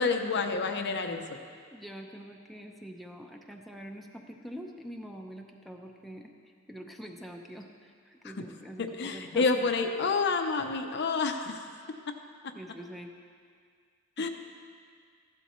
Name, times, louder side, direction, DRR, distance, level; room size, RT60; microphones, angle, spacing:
voice 1, 0.0-1.4 8.4-8.5 8.8-11.7 12.4-12.5 14.2-14.3, left 4 dB, 55° left, 5 dB, 0.7 m, -29 dB
voice 2, 1.7-6.3 6.7-9.5 12.5-13.1 14.2-14.3, equal, ahead, 1 dB, 0.6 m, -45 dB
14.0 x 12.0 x 3.1 m, 2.1 s
head